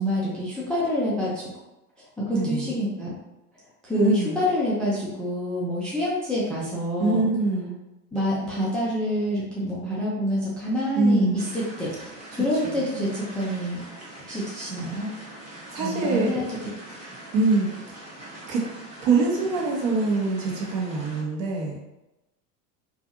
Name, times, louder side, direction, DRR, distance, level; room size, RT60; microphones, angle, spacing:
voice 1, 0.0-1.4 2.2-3.1 3.9-7.2 8.1-11.9 12.3-13.8 14.3-15.1 15.8-16.4, equal, ahead, -7 dB, 0.4 m, -27 dB
voice 2, 2.3-2.7 4.0-4.4 7.0-7.7 11.0-11.5 12.3-12.8 15.7-16.5 17.3-17.7 18.5-18.6 19.0-21.8, right 3 dB, 45° right, -2 dB, 0.9 m, -24 dB
sound 1, 11.4-21.2, right 1 dB, 15° right, 0.8 m, -43 dB
2.6 x 2.4 x 2.5 m, 0.96 s
hypercardioid pair, 80°, 49 cm